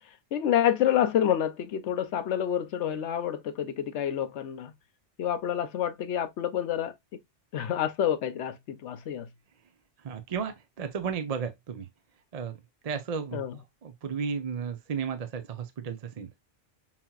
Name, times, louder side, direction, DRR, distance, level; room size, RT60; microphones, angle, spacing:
voice 1, 0.3-4.7 5.2-6.9 7.5-9.3 13.3-13.5, left 10 dB, 70° left, 1.0 m, -28 dB
voice 2, 10.0-11.9 12.3-12.6 12.8-16.3, right 6 dB, 40° right, 0.6 m, -34 dB
5.7 x 2.9 x 2.3 m
omnidirectional pair, 1.3 m